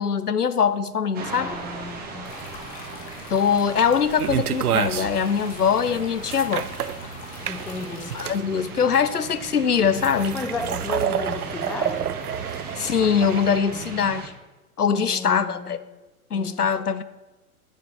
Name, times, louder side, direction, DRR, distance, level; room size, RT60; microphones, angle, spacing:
voice 1, 0.0-1.6 3.3-6.7 8.1-10.4 12.8-14.3 14.8-15.8 16.3-17.0, left 7 dB, 85° left, 14 dB, 0.7 m, -22 dB
sound 1, 1.1-14.3, right 4 dB, 20° right, 1.5 m, -38 dB
voice 2, 1.4-2.3 7.5-8.1 10.3-12.1 13.7-14.2 14.9-15.7 16.3-16.7, left 3 dB, 5° left, 4 dB, 0.5 m, -34 dB
sound 2, 2.2-8.3, left 4 dB, 25° left, 2.0 m, -43 dB
sound 3, 4.2-13.6, right 10 dB, 75° right, 0.5 m, -29 dB
8.4 x 6.8 x 6.8 m, 1.1 s
figure-of-eight pair, 105°, 45 cm